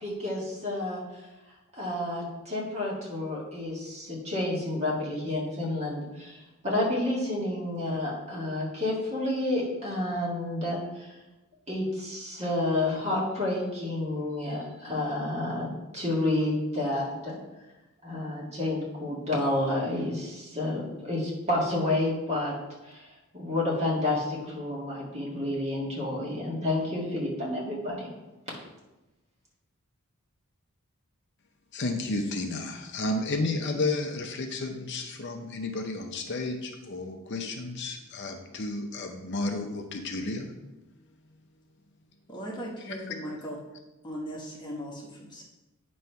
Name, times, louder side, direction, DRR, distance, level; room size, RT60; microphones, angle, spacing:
voice 1, 0.0-1.0 1.7-11.1 11.7-17.4 18.0-22.5 22.8-23.1 23.3-28.1, left 1 dB, 30° right, -4 dB, 1.9 m, -30 dB
voice 2, 31.7-40.5 42.9-43.0, left 2 dB, 50° left, 4 dB, 0.6 m, -32 dB
voice 3, 42.3-43.6 44.0-45.4, equal, 20° left, -3 dB, 1.1 m, -38 dB
9.2 x 3.1 x 5.6 m, 1.0 s
head